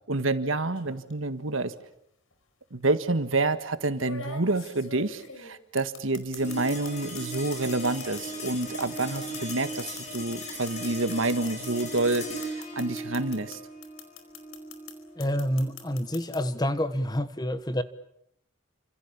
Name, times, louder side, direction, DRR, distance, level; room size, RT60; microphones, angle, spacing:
voice 1, 0.1-1.7 2.7-13.6, right 2 dB, 75° right, 1.7 m, -28 dB
sound 1, 0.7-1.1 2.3-2.4 3.9-6.9 7.2-13.6 13.8-14.9 15.2-16.4, left 5 dB, 90° left, 4.9 m, -43 dB
sound 2, 6.4-17.0, equal, 35° left, 6.9 m, -38 dB
voice 2, 15.2-17.8, equal, 20° left, 1.3 m, -28 dB
29.0 x 27.0 x 7.2 m
head